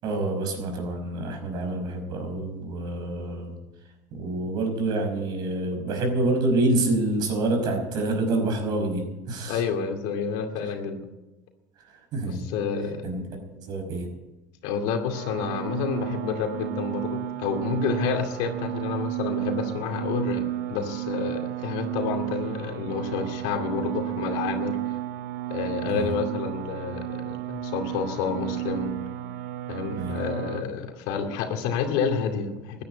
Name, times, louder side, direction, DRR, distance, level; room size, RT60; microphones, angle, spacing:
voice 1, 0.0-3.5 4.1-9.6 11.9-12.5 13.0-13.2 13.5-14.1 25.9-26.1 30.0-30.2, right 2 dB, 60° right, 4 dB, 5.4 m, -27 dB
voice 2, 9.5-11.1 12.3-13.0 14.6-25.0 25.5-29.0 29.7-32.8, left 6 dB, 75° left, 5 dB, 2.4 m, -29 dB
sound 1, 15.1-30.6, right 14 dB, 85° right, 0.7 m, -32 dB
14.5 x 10.0 x 9.1 m, 1.0 s
supercardioid pair, 100°, 8 cm